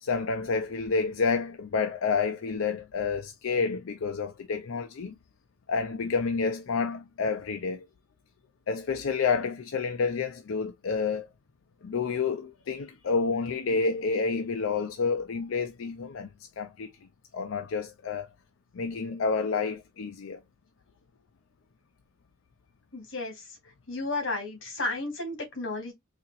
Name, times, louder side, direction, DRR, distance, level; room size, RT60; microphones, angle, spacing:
voice 1, 0.0-5.1 5.7-7.9 8.7-11.3 11.8-16.3 16.6-16.9 17.3-18.3 18.7-20.4, left 4 dB, 90° left, 0.5 m, -29 dB
voice 2, 22.9-23.4 23.9-25.9, left 2 dB, 70° left, 2.4 m, -33 dB
4.3 x 2.8 x 2.5 m
head